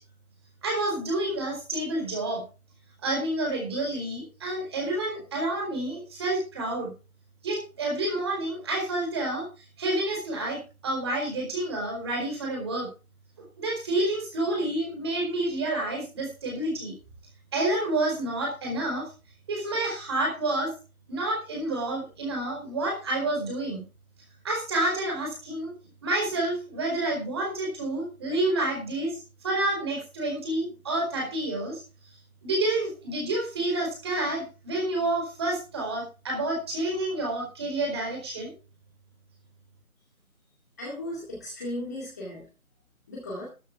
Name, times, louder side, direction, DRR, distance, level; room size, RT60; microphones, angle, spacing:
voice 1, 0.6-2.4 3.0-6.9 7.4-9.5 9.8-10.6 10.8-12.9 13.6-16.9 17.5-19.1 19.5-20.7 21.1-23.8 24.4-25.7 26.0-29.2 29.4-31.8 32.4-38.5, right 2 dB, 20° right, 0 dB, 4.7 m, -29 dB
voice 2, 40.8-42.4 43.1-43.5, left 1 dB, 10° left, -5 dB, 2.1 m, -36 dB
13.0 x 9.9 x 4.7 m, 0.32 s
figure-of-eight pair, 170°, 42 cm